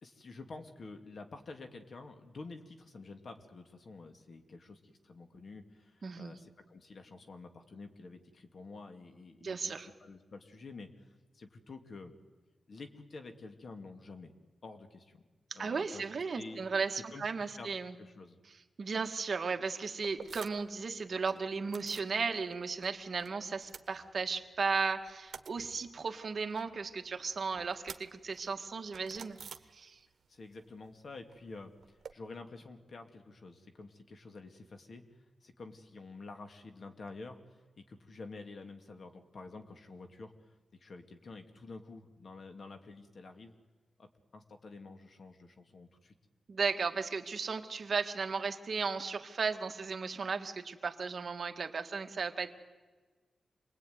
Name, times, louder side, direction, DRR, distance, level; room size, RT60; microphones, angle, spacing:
voice 1, 0.0-12.1 12.7-14.3 14.6-15.2 15.5-16.0 16.3-16.6 17.1-17.7 18.0-18.4 30.3-43.5 44.0-46.1, left 3 dB, 55° left, 6 dB, 2.4 m, -49 dB
voice 2, 6.0-6.3 9.4-9.9 15.5-17.9 18.8-29.4 29.7-30.0 46.5-52.5, right 5 dB, 50° right, 6 dB, 1.7 m, -35 dB
sound 1, 20.0-20.8 21.1-22.2 22.5-23.3 23.5-24.6 24.9-30.3 30.5-32.1, right 6 dB, 80° right, 1.3 m, -51 dB
27.5 x 21.0 x 9.5 m, 1.4 s
wide cardioid pair, 120°, 0 cm